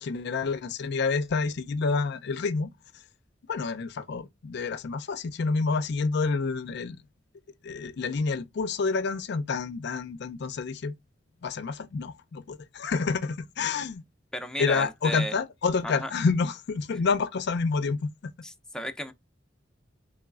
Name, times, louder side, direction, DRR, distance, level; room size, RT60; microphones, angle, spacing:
voice 1, 0.0-3.0 3.5-7.0 7.6-10.9 11.4-14.0 14.6-18.3, left 4 dB, 60° left, 0.4 m, -28 dB
voice 2, 14.3-15.3 15.8-16.1 18.4-19.1, equal, 5° left, 0.4 m, -34 dB
4.0 x 3.1 x 2.3 m
head